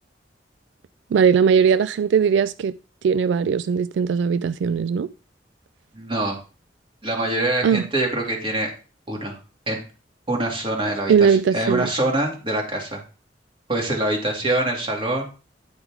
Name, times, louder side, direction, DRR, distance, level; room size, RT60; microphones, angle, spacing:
voice 1, 1.1-2.7 3.0-5.1 7.6-7.9 11.1-11.9, right 6 dB, 80° right, 0.3 m, -19 dB
voice 2, 5.9-6.4 7.0-8.7 9.1-9.4 9.7-9.8 10.3-13.0 13.7-15.3, right 1 dB, 30° right, 2.4 m, -24 dB
10.5 x 4.9 x 4.8 m
head